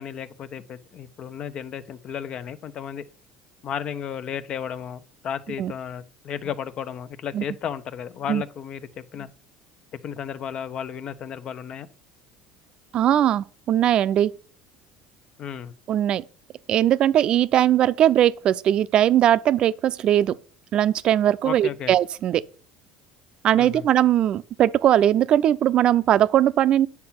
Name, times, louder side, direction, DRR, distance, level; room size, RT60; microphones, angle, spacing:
voice 1, 0.0-3.0 3.6-9.3 10.0-11.9 15.4-15.7 21.4-21.9 23.5-23.9, left 8 dB, 50° left, 0.9 m, -33 dB
voice 2, 12.9-14.3 15.9-16.2 16.7-20.3 20.7-22.4 23.4-26.9, right 11 dB, 50° right, 0.6 m, -20 dB
9.6 x 6.0 x 5.8 m
supercardioid pair, 95°, 2 cm